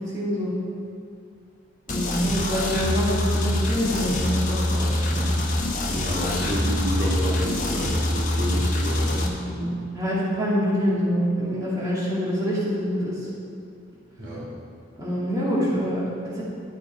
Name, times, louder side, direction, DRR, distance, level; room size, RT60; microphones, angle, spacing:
voice 1, 0.1-0.5 1.9-5.3 9.1-13.3 15.0-16.4, equal, 15° right, -8 dB, 2.3 m, -26 dB
sound 1, 1.9-9.3, left 1 dB, 40° left, 1.2 m, -25 dB
voice 2, 5.9-9.7 14.2-14.5, equal, 70° right, -6 dB, 2.4 m, -29 dB
12.0 x 8.3 x 4.5 m, 2.4 s
head